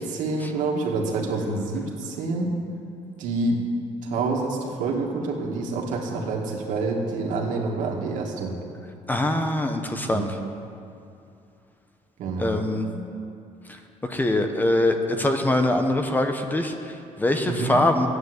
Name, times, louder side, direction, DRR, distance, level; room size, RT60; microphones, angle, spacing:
voice 1, 0.0-2.5 3.2-3.7 4.0-8.6 10.1-10.3 12.2-12.6 17.5-17.8, right 3 dB, 80° right, 0 dB, 2.2 m, -27 dB
voice 2, 9.1-10.4 12.4-12.9 13.7-18.1, left 1 dB, 15° left, 5 dB, 0.9 m, -23 dB
11.5 x 9.3 x 8.1 m, 2.6 s
cardioid pair, 140°, 13 cm